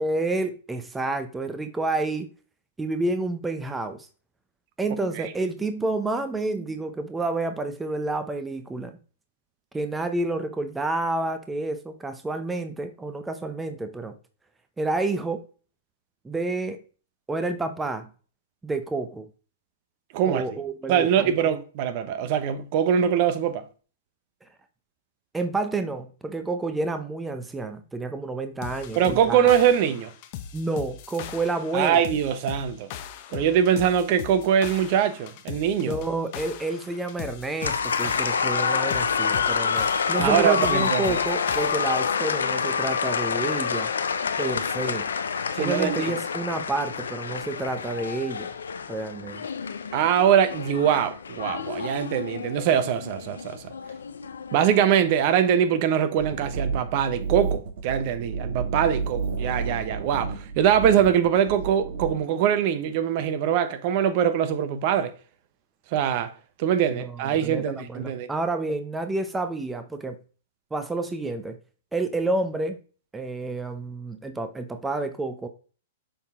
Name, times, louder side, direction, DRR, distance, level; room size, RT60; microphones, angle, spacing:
voice 1, 0.0-2.3 2.8-4.1 4.8-9.0 9.7-14.1 14.8-15.4 16.2-16.8 17.3-18.1 18.6-19.3 20.2-21.3 25.3-29.5 30.5-32.0 35.9-43.9 44.4-45.1 45.6-48.5 48.9-49.5 67.0-67.1 67.4-70.2 70.7-71.6 71.9-72.8 73.1-75.5, right 2 dB, 10° right, 0.7 m, -29 dB
voice 2, 20.1-20.4 20.9-23.6 29.0-30.1 31.7-32.9 33.3-36.0 40.2-41.2 45.5-46.1 49.9-53.6 54.5-65.1 65.9-66.3 66.6-68.3, right 9 dB, 50° right, 0.8 m, -23 dB
sound 1, 28.6-42.2, left 9 dB, 50° left, 0.9 m, -39 dB
sound 2, 37.6-55.3, left 6 dB, 85° left, 0.6 m, -28 dB
sound 3, 56.2-62.1, right 5 dB, 70° right, 1.8 m, -31 dB
6.9 x 3.9 x 3.6 m
hypercardioid pair, 125°, 0 cm